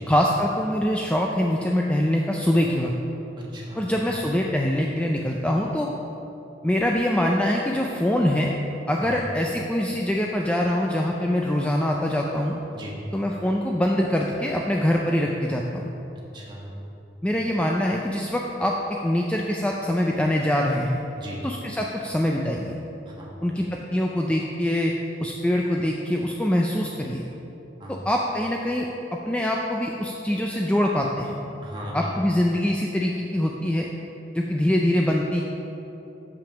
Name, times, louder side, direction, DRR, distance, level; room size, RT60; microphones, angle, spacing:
voice 1, 0.1-2.9 3.8-5.9 6.6-8.5 8.9-12.6 13.1-15.9 17.2-18.8 19.0-21.0 21.4-22.7 23.4-24.9 25.2-27.2 27.9-31.3 31.9-33.9 34.3-35.4, left 1 dB, 5° left, -1 dB, 0.4 m, -24 dB
voice 2, 3.4-4.0 9.0-9.2 12.7-13.0 16.3-16.7 17.5-17.6 21.2-21.4 23.0-23.3 27.8-28.0 31.6-32.0, equal, 25° right, -4 dB, 1.5 m, -38 dB
7.2 x 5.8 x 5.8 m, 3.0 s
head